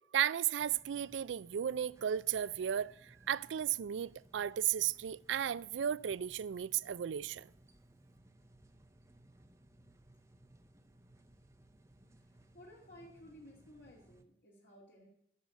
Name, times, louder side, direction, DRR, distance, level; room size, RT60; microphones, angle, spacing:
voice 1, 0.1-7.5, right 9 dB, 70° right, 0.3 m, -34 dB
sound 1, 0.6-14.2, right 1 dB, 15° right, 0.6 m, -63 dB
voice 2, 12.1-15.1, left 1 dB, 55° left, 2.2 m, -57 dB
9.0 x 6.5 x 8.3 m
head